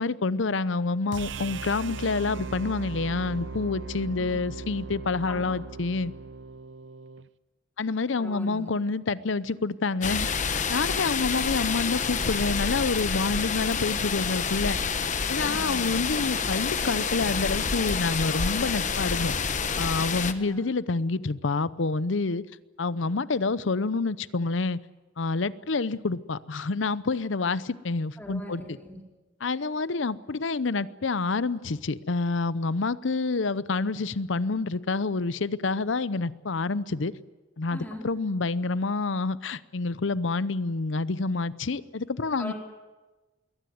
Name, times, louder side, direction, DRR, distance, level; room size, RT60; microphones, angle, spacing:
voice 1, 0.0-6.1 7.8-10.3 10.7-14.8 15.3-19.3 19.8-22.4 22.8-24.8 25.2-28.6 29.4-37.1 37.6-42.5, left 3 dB, 80° left, 17 dB, 0.7 m, -28 dB
sound 1, 1.1-7.3, right 4 dB, 70° right, 0.7 m, -38 dB
voice 2, 8.2-8.7 15.4-15.8 20.3-20.6 28.2-29.0 37.7-38.1 42.4-42.5, left 1 dB, 10° left, 0 dB, 4.3 m, -40 dB
sound 2, 10.0-20.3, left 5 dB, 40° left, 1.1 m, -28 dB
22.0 x 18.5 x 9.4 m, 1.2 s
head